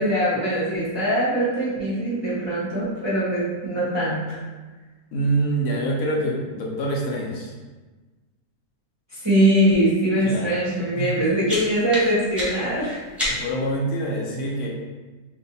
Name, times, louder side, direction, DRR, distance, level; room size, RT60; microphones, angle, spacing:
voice 1, 0.0-4.4 9.1-13.0, right 1 dB, 25° right, -10 dB, 0.7 m, -22 dB
voice 2, 5.1-7.5 10.2-10.7 10.9-11.2 13.2-14.7, right 1 dB, 70° left, -1 dB, 1.0 m, -25 dB
sound 1, 11.0-13.7, left 1 dB, ahead, 1.0 m, -31 dB
2.7 x 2.6 x 3.9 m, 1.3 s
omnidirectional pair, 1.6 m